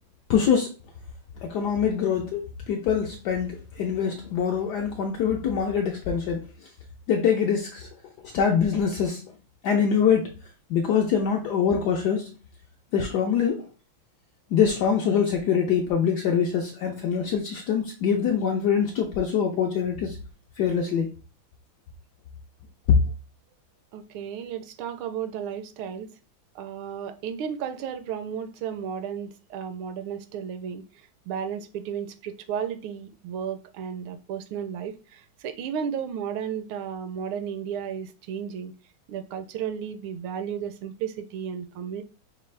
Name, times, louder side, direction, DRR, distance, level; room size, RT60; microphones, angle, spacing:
voice 1, 0.3-0.7 1.4-6.4 7.1-7.9 8.2-9.3 9.6-10.3 10.7-12.3 12.9-13.6 14.5-20.2 20.6-21.1, left 7 dB, 75° left, 0.9 m, -24 dB
voice 2, 23.9-26.1 26.5-30.8 31.3-38.7 39.1-42.0, right 8 dB, 80° right, 1.4 m, -33 dB
5.3 x 2.4 x 3.2 m
omnidirectional pair, 2.3 m